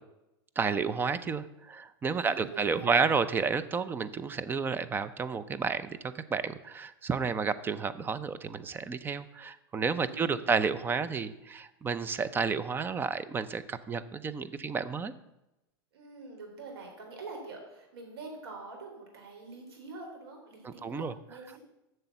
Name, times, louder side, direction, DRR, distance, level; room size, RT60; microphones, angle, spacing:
voice 1, 0.6-15.1 20.6-21.1, right 5 dB, 15° right, 13 dB, 0.5 m, -31 dB
voice 2, 2.1-3.0 10.0-10.5 15.9-21.6, right 3 dB, 85° right, 1 dB, 3.6 m, -45 dB
7.7 x 6.7 x 7.2 m, 0.93 s
supercardioid pair, 130°, 13 cm